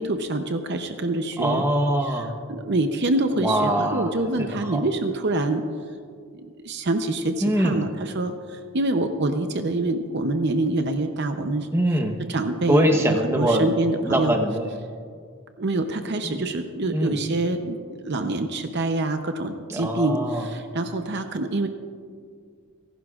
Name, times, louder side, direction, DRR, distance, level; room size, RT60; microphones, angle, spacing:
voice 1, 0.0-1.6 2.0-2.2 2.5-5.6 6.6-11.7 12.3-13.1 13.4-14.4 15.6-21.7, right 2 dB, 50° right, 7 dB, 0.7 m, -26 dB
voice 2, 1.4-2.4 3.4-4.1 4.4-4.8 7.4-7.8 11.7-12.2 12.7-13.7 14.0-14.7 16.2-16.4 16.9-17.2 19.7-20.5, right 1 dB, 10° right, 4 dB, 1.0 m, -23 dB
30.0 x 11.5 x 2.4 m, 2.1 s
head